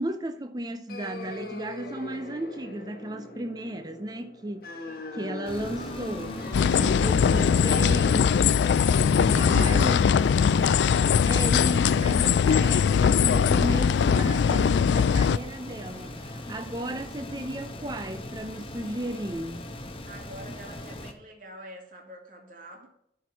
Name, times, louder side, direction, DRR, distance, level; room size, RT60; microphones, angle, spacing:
voice 1, 0.0-4.8 5.1-6.4 6.8-8.4 9.1-10.0 11.3-19.7, right 1 dB, 20° right, 0.5 m, -34 dB
sound 1, 0.9-11.4, left 2 dB, 55° left, 1.5 m, -40 dB
sound 2, 5.4-21.1, left 1 dB, 30° left, 1.1 m, -40 dB
sound 3, 6.5-15.4, left 7 dB, 80° left, 0.3 m, -21 dB
voice 2, 9.4-10.2 10.6-10.8 20.1-22.9, right 1 dB, 50° right, 2.4 m, -46 dB
12.5 x 4.7 x 5.4 m
head